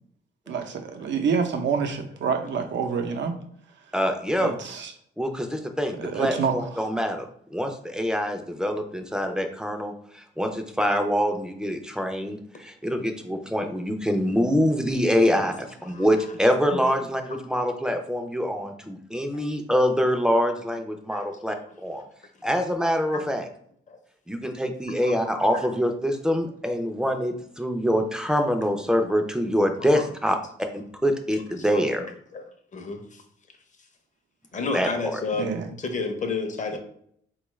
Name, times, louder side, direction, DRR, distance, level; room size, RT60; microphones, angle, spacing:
voice 1, 0.5-3.4 4.4-4.9 6.0-6.7 35.4-35.7, right 6 dB, 75° right, 5 dB, 0.6 m, -27 dB
voice 2, 3.9-4.5 5.2-21.6 21.8-22.0 22.4-23.5 24.3-30.4 30.7-32.1 34.7-35.2, equal, 5° right, 5 dB, 0.4 m, -25 dB
voice 3, 21.1-21.6 23.1-23.3 23.9-24.0 25.2-25.6 29.4-29.9 31.7-31.8 32.3-32.4 32.7-33.2 34.5-35.5 35.8-36.8, left 4 dB, 40° left, 5 dB, 0.7 m, -32 dB
4.2 x 2.3 x 3.1 m, 0.66 s
cardioid pair, 115°, 19 cm